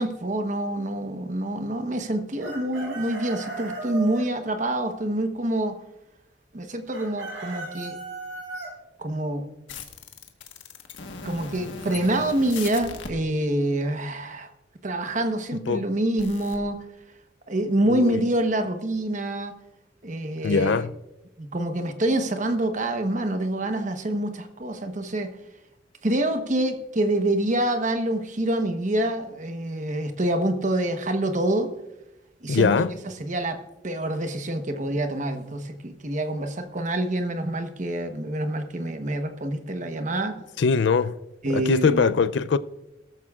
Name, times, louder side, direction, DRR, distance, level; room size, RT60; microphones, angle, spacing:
voice 1, 0.0-5.8 6.5-8.0 9.0-9.5 11.2-14.5 14.8-16.8 17.5-19.6 20.0-20.8 21.4-25.3 26.0-31.7 32.4-32.9 33.2-40.4 41.4-42.1, right 1 dB, 40° right, 1.1 m, -26 dB
Chicken rooster, 2.4-4.2 6.9-8.7, right 3 dB, 85° right, 3.9 m, -35 dB
sound 1, 9.7-13.1 16.2-16.6, left 4 dB, 90° left, 1.4 m, -38 dB
voice 2, 17.9-18.3 20.4-20.9 32.5-33.0 40.6-41.2 41.5-42.6, left 5 dB, 65° left, 0.4 m, -22 dB
17.5 x 13.5 x 2.4 m
head